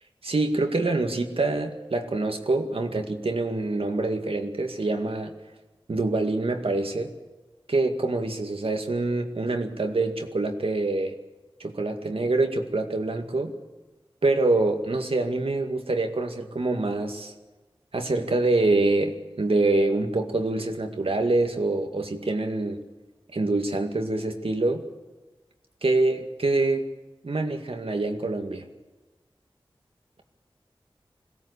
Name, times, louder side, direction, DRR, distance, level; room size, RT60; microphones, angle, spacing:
voice 1, 0.2-5.3 5.9-7.1 7.7-11.2 11.6-13.5 14.2-17.3 17.9-22.8 23.3-24.8 25.8-26.9 27.2-28.6, right 2 dB, 80° right, 4 dB, 2.1 m, -25 dB
21.5 x 17.0 x 8.3 m, 1.2 s
wide cardioid pair, 50°, 10 cm